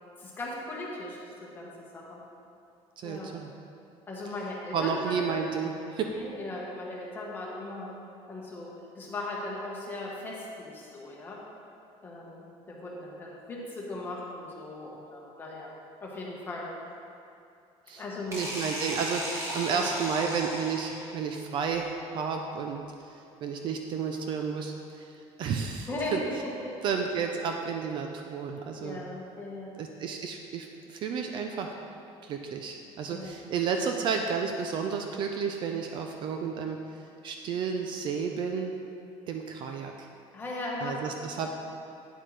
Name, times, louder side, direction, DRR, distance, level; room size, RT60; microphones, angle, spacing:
voice 1, 0.2-2.2 3.0-3.3 4.1-5.4 6.0-7.9 8.3-11.4 12.0-15.7 16.0-16.7 18.0-18.4 19.7-19.9 25.9-26.7 28.8-29.7 33.1-33.4 40.3-41.2, left 2 dB, 15° left, -4 dB, 1.3 m, -38 dB
voice 2, 3.0-3.5 4.7-6.1 17.9-18.0 18.3-22.8 23.4-25.1 25.4-26.2 26.8-29.0 29.8-31.7 32.2-36.8 37.2-38.7 39.3-39.9 40.8-41.5, right 6 dB, 40° right, 3 dB, 0.5 m, -31 dB
sound 1, 18.3-21.2, right 1 dB, 25° right, 1.2 m, -36 dB
9.3 x 7.8 x 3.3 m, 2.6 s
cardioid pair, 180°, 12 cm